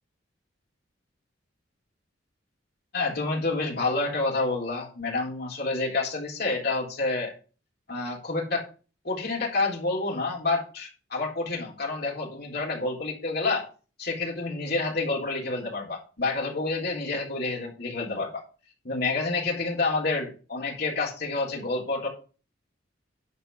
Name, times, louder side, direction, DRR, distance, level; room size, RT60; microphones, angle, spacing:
voice 1, 2.9-7.3 7.9-8.7 9.0-13.7 14.0-18.4 18.8-22.1, left 3 dB, 55° left, -2 dB, 3.9 m, -28 dB
11.0 x 4.6 x 6.7 m, 0.36 s
head